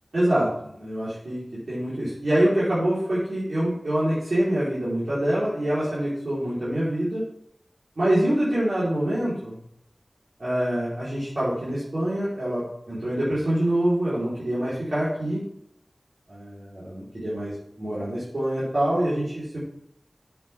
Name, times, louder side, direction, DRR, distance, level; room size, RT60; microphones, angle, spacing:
voice 1, 0.1-7.3 8.0-9.6 10.4-15.4 16.3-19.6, right 1 dB, 85° right, -12 dB, 4.3 m, -25 dB
9.3 x 7.9 x 3.7 m, 0.75 s
wide cardioid pair, 40°, 0 cm